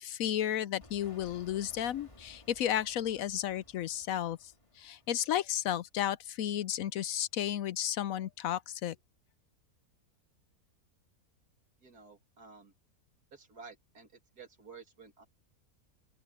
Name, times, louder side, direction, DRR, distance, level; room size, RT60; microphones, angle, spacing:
voice 1, 0.0-9.0, left 11 dB, 70° left, 0.9 m, -33 dB
sound 1, 0.8-5.5, left 2 dB, 20° left, 2.0 m, -58 dB
voice 2, 11.8-12.7 13.3-14.1 14.4-15.2, right 5 dB, 80° right, 3.4 m, -52 dB
open air
omnidirectional pair, 1.6 m